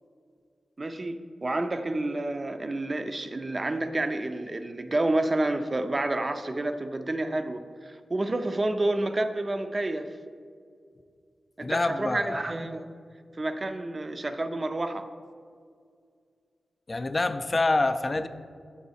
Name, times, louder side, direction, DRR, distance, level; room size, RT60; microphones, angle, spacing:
voice 1, 0.8-10.2 11.6-12.9 13.4-15.1, right 2 dB, 35° right, 8 dB, 0.4 m, -29 dB
voice 2, 11.6-12.4 16.9-18.3, left 2 dB, 35° left, 10 dB, 0.3 m, -26 dB
6.9 x 4.7 x 4.1 m, 2.2 s
cardioid pair, 65°, 0 cm